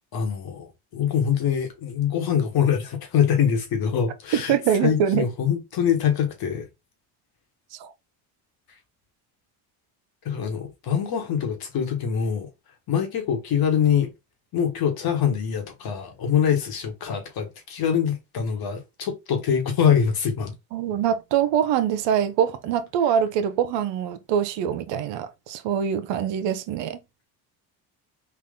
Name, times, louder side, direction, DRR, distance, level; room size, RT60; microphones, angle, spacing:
voice 1, 0.1-4.5 4.8-6.7 10.2-12.5 12.9-14.1 14.5-20.5, left 8 dB, 50° left, 1.3 m, -24 dB
voice 2, 4.3-5.3 7.7-7.9 20.7-27.0, right 9 dB, 65° right, 0.8 m, -24 dB
3.6 x 2.4 x 3.6 m
cardioid pair, 105°, 46 cm